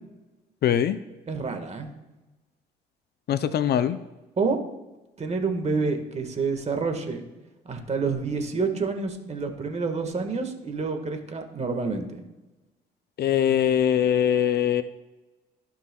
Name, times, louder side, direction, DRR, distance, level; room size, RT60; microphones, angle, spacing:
voice 1, 0.6-1.0 3.3-4.0 13.2-14.8, left 9 dB, 55° left, 12 dB, 0.5 m, -22 dB
voice 2, 1.3-1.9 4.4-4.6 5.2-7.2 7.6-12.2, right 4 dB, 35° right, 5 dB, 1.5 m, -28 dB
15.0 x 5.6 x 2.3 m, 1.1 s
supercardioid pair, 70°, 20 cm